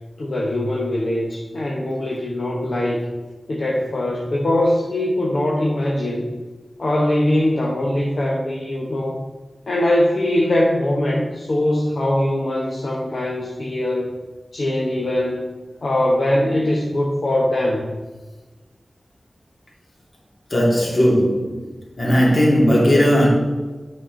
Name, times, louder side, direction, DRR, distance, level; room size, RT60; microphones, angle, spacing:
voice 1, 0.2-3.1 3.5-6.3 6.8-9.2 9.7-14.1 14.5-15.5 15.8-17.9, left 1 dB, 75° left, 1.0 m, -21 dB
voice 2, 20.5-21.6 22.0-23.3, equal, 55° left, 2.3 m, -16 dB
7.7 x 5.5 x 3.8 m
wide cardioid pair, 70°, 0 cm